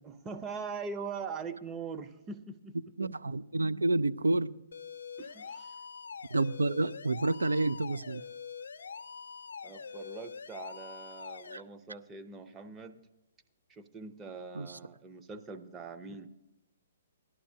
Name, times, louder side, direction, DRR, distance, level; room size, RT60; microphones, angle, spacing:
voice 1, 0.0-2.7 5.2-5.7 9.6-13.0 13.7-16.3, right 5 dB, 20° right, 0.6 m, -42 dB
voice 2, 3.0-4.5 6.3-8.2 11.5-11.6 14.6-14.7, right 2 dB, 90° right, 0.4 m, -29 dB
sound 1, 4.7-11.6, left 6 dB, 75° left, 0.6 m, -44 dB
17.0 x 11.0 x 2.7 m
hypercardioid pair, 130°, 0 cm